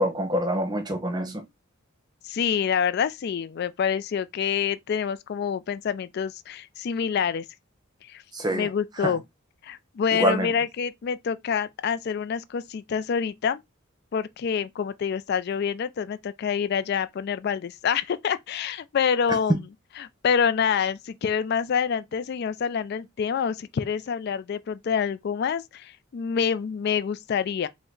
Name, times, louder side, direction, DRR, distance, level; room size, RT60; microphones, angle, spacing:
voice 1, 0.0-1.4 8.3-8.7 9.0-9.2 10.1-10.5, equal, 20° right, 0.9 m, -26 dB
voice 2, 2.2-7.5 8.1-8.2 8.5-9.2 9.6-13.6 14.1-19.5 20.0-27.7, left 7 dB, 50° left, 0.3 m, -27 dB
5.0 x 2.1 x 3.7 m
head